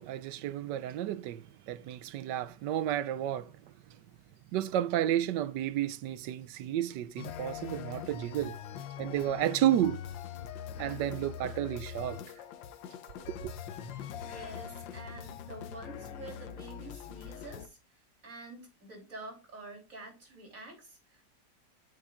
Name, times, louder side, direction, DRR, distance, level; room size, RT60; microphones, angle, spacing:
voice 1, 0.0-3.5 4.5-8.6 9.0-10.0 10.8-12.2 13.2-13.5, right 12 dB, 75° right, 1.2 m, -32 dB
sound 1, 7.2-17.7, left 8 dB, 85° left, 1.5 m, -43 dB
voice 2, 13.9-21.2, right 2 dB, 45° right, 3.7 m, -48 dB
9.1 x 7.3 x 2.4 m
omnidirectional pair, 2.0 m